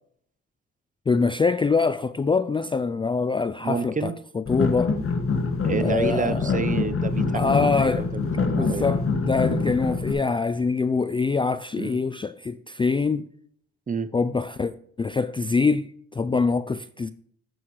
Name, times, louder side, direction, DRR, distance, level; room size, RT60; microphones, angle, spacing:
voice 1, 1.1-4.9 5.8-6.6 7.3-8.1 8.5-13.3 14.1-14.7 15.0-17.1, left 4 dB, 15° left, 0.4 m, -24 dB
voice 2, 3.6-4.1 5.6-8.9 11.8-12.0 13.9-14.1, right 5 dB, 25° right, 0.8 m, -29 dB
sound 1, 4.5-10.1, left 4 dB, 45° left, 1.7 m, -25 dB
10.5 x 7.9 x 3.2 m
cardioid pair, 90°, 30 cm